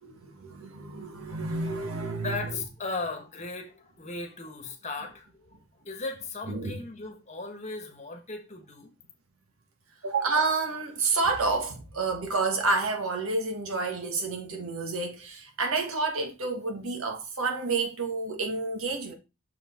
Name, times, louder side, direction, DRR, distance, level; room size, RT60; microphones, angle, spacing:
voice 1, 0.0-2.6 6.5-6.8 10.0-19.1, right 3 dB, 80° right, 1.5 m, -29 dB
voice 2, 2.1-5.6 5.8-8.9, left 3 dB, 35° left, 1.3 m, -37 dB
6.5 x 4.9 x 3.7 m
head